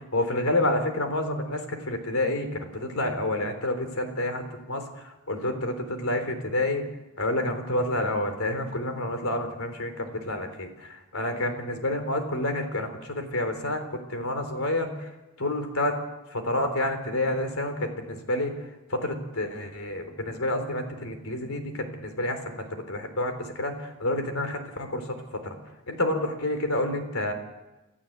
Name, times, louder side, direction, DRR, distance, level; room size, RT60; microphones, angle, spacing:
voice 1, 0.0-6.8 7.2-15.1 15.4-16.0 16.3-25.6 25.9-27.3, left 1 dB, 70° left, 7 dB, 3.7 m, -29 dB
30.0 x 14.0 x 8.0 m, 1.1 s
head